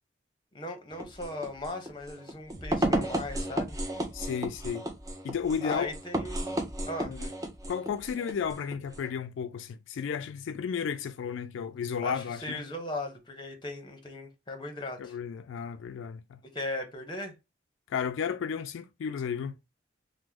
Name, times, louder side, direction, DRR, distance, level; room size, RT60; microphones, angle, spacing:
voice 1, 0.5-3.8 5.6-7.1 12.0-15.1 16.5-17.3, left 2 dB, 25° left, 0.7 m, -38 dB
sound 1, 0.9-9.1, right 1 dB, 15° right, 0.4 m, -33 dB
voice 2, 4.1-4.8 5.2-5.9 7.0-7.3 7.7-12.6 15.0-16.4 17.9-19.6, left 7 dB, 80° left, 0.3 m, -33 dB
3.0 x 2.0 x 3.5 m
head